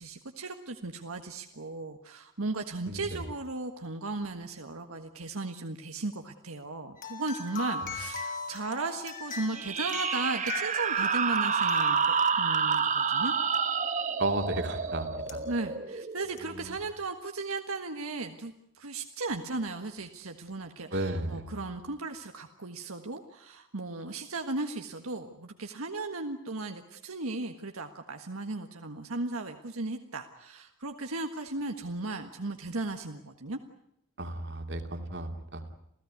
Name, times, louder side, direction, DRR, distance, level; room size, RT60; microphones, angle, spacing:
voice 1, 0.0-13.3 15.5-33.6, right 3 dB, 80° right, 5 dB, 1.6 m, -36 dB
voice 2, 2.9-3.2 7.8-7.9 14.2-15.5 16.5-16.8 20.9-21.6 34.2-35.7, right 2 dB, 55° right, 6 dB, 2.8 m, -34 dB
sound 1, 7.0-12.9 15.3-15.4 16.4-16.5, left 3 dB, 40° left, 3.7 m, -39 dB
sound 2, 9.5-16.8, right 6 dB, 35° right, 1.1 m, -29 dB
28.0 x 16.0 x 9.6 m, 0.75 s
head